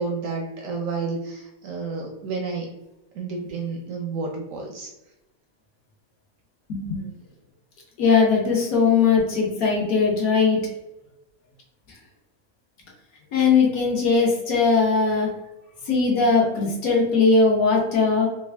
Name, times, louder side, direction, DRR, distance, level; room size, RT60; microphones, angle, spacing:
voice 1, 0.0-2.7 3.1-4.9, right 4 dB, 70° right, 1 dB, 0.8 m, -30 dB
voice 2, 6.7-7.0 8.0-10.6 13.3-15.3 15.9-18.3, left 4 dB, 60° left, -1 dB, 1.2 m, -19 dB
3.4 x 2.2 x 3.3 m, 0.96 s
omnidirectional pair, 1.8 m